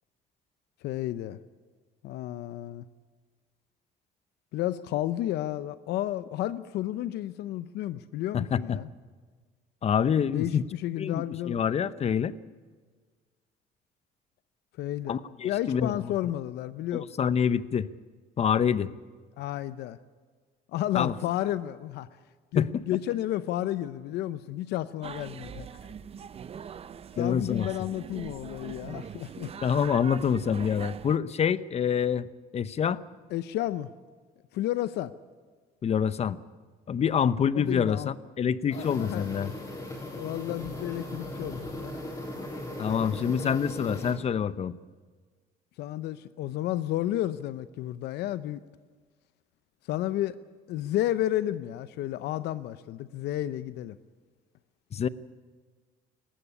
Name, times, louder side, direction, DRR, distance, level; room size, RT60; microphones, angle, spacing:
voice 1, 0.8-1.4 2.0-2.8 4.5-8.9 10.3-11.6 14.8-15.2 15.4-17.1 19.4-20.0 20.7-22.1 22.5-25.7 27.2-29.5 33.3-33.9 34.5-35.1 37.5-38.1 38.7-39.3 40.1-42.0 45.8-48.6 49.9-50.4 50.7-54.0, left 13 dB, 80° left, 14 dB, 0.7 m, -32 dB
voice 2, 8.3-8.8 9.8-10.6 11.0-12.3 15.1-15.9 16.9-17.9 18.4-18.9 20.9-21.1 22.5-22.8 27.2-27.7 29.6-32.3 32.5-33.0 35.8-36.4 36.9-39.5 42.8-44.7 54.9-55.1, left 7 dB, 40° left, 16 dB, 0.8 m, -26 dB
sound 1, 25.0-31.2, right 7 dB, 35° right, 0.6 m, -42 dB
sound 2, 38.7-44.1, left 1 dB, 20° left, 6.3 m, -38 dB
19.0 x 15.5 x 9.9 m, 1.5 s
cardioid pair, 110°, 17 cm